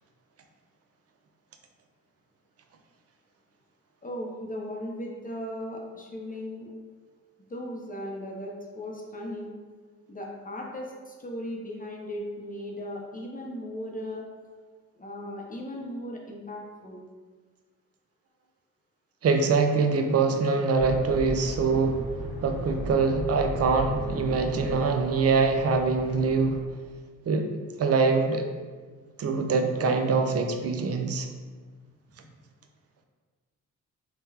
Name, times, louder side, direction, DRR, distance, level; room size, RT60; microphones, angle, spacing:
voice 1, 4.0-6.7 7.5-9.5 10.1-14.3 15.0-17.0, left 1 dB, 25° left, -1 dB, 0.6 m, -37 dB
voice 2, 19.2-22.0 22.4-26.6 27.3-27.5 27.8-28.5 29.2-31.3, right 4 dB, 45° right, 5 dB, 0.5 m, -24 dB
sound 1, 20.8-26.6, right 1 dB, 20° right, 1.4 m, -37 dB
3.5 x 2.1 x 2.7 m, 1.5 s
hypercardioid pair, 45°, 36 cm